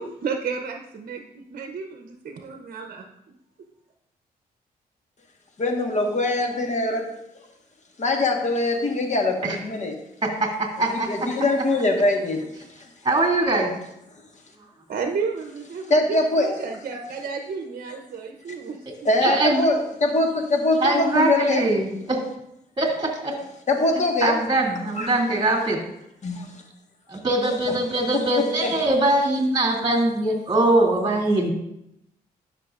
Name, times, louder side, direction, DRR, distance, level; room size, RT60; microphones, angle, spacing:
voice 1, 0.0-3.0 14.9-18.8, right 5 dB, 60° right, 4 dB, 0.7 m, -32 dB
voice 2, 5.6-7.2 8.0-9.9 10.9-12.5 12.8-12.9 15.9-16.5 19.0-21.6 23.7-24.4 25.0-25.1 26.2-26.6 27.4-27.7 28.1-28.3 28.6-28.8, left 2 dB, 45° left, 3 dB, 1.5 m, -23 dB
voice 3, 10.2-11.1 13.0-13.7 19.2-19.7 20.8-22.2 22.8-23.3 24.2-25.8 27.1-31.5, right 2 dB, 25° right, -2 dB, 2.5 m, -22 dB
11.0 x 5.9 x 2.5 m, 0.82 s
cardioid pair, 60°, 16 cm